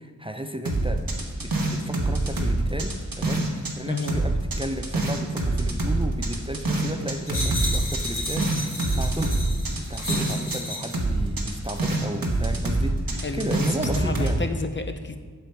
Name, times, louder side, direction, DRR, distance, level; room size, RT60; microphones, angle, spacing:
voice 1, 0.0-9.4 9.7-13.0 13.3-14.5, right 1 dB, 15° right, 5 dB, 0.5 m, -33 dB
sound 1, 0.7-3.7 4.0-10.6 10.8-14.4, right 2 dB, 85° right, 1.2 m, -25 dB
sound 2, 7.3-11.0 11.7-11.8, left 1 dB, 70° left, 1.9 m, -33 dB
voice 2, 13.2-13.6 14.0-15.2, left 3 dB, 35° left, 7 dB, 0.6 m, -30 dB
7.8 x 6.8 x 4.5 m, 1.5 s
wide cardioid pair, 45°, 34 cm